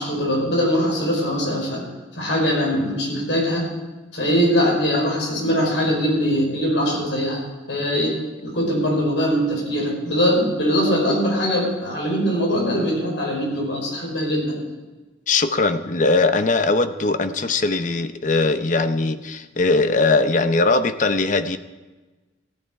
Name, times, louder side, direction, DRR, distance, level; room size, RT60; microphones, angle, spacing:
voice 1, 0.0-1.9 2.2-3.7 4.1-7.4 7.7-8.2 8.4-14.6, equal, 75° left, -2 dB, 5.3 m, -21 dB
voice 2, 15.3-21.6, left 3 dB, 40° left, 10 dB, 0.6 m, -20 dB
15.5 x 10.5 x 4.7 m, 1.2 s
head